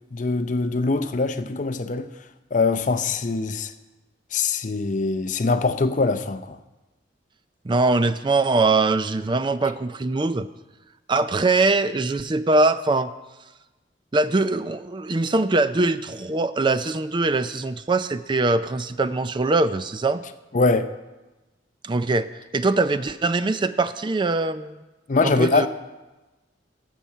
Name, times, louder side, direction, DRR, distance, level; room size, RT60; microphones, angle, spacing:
voice 1, 0.1-2.1 2.5-3.7 4.3-6.6 20.5-20.9 25.1-25.7, left 3 dB, 40° left, 0.5 m, -23 dB
voice 2, 7.6-10.5 11.1-13.1 14.1-20.2 21.8-22.3 22.5-24.8 25.2-25.7, right 3 dB, 25° right, 0.4 m, -22 dB
13.5 x 7.1 x 5.6 m
head